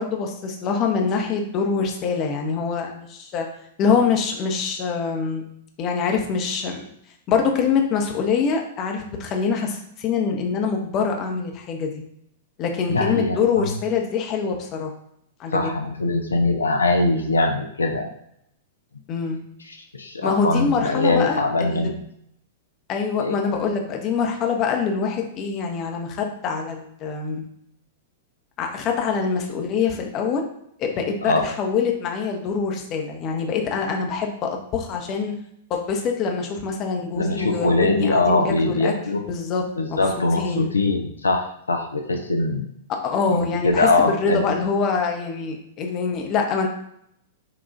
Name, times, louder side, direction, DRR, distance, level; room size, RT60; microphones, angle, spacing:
voice 1, 0.0-3.5 3.8-5.4 5.8-6.9 7.3-12.0 12.6-14.9 15.4-15.7 19.1-19.4 20.2-21.9 22.9-27.5 28.6-30.4 30.8-35.3 35.7-38.9 39.3-39.6 39.9-40.0 40.4-40.7 43.0-46.7, left 5 dB, 30° left, 2 dB, 0.7 m, -24 dB
voice 2, 12.9-13.7 15.5-18.1 19.7-21.9 23.2-23.4 31.2-31.5 37.1-39.2 39.8-42.6 43.3-44.6, left 2 dB, 75° left, 3 dB, 0.4 m, -22 dB
5.7 x 2.4 x 2.5 m, 0.72 s
figure-of-eight pair, 100°, 0 cm